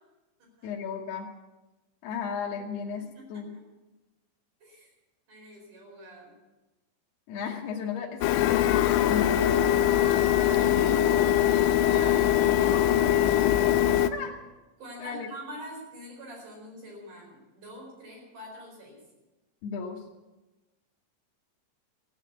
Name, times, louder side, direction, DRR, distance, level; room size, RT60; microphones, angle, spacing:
voice 1, 0.6-1.3 2.0-3.5 7.3-10.0 10.6-11.1 14.1-14.3 15.0-15.3 19.6-20.0, left 6 dB, 70° left, -2 dB, 2.9 m, -35 dB
voice 2, 3.0-3.5 4.6-4.9 5.3-6.3 10.3-11.3 11.9-13.4 14.8-19.0, equal, 45° right, -1 dB, 5.8 m, -45 dB
Printer, 8.2-14.1, left 11 dB, 85° left, 3.0 m, -22 dB
15.0 x 9.0 x 8.4 m, 1.1 s
omnidirectional pair, 5.2 m